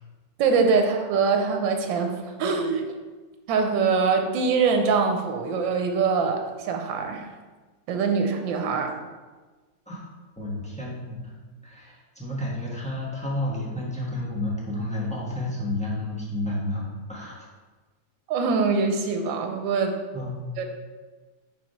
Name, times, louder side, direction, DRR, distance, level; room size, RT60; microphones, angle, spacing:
voice 1, 0.4-2.8 3.5-7.3 7.9-8.9 18.3-20.0 20.6-20.7, right 5 dB, 75° right, 4 dB, 1.5 m, -23 dB
voice 2, 10.4-11.3 11.6-17.4 20.1-20.5, left 1 dB, 5° left, -5 dB, 1.1 m, -31 dB
4.8 x 4.2 x 5.4 m, 1.3 s
omnidirectional pair, 2.1 m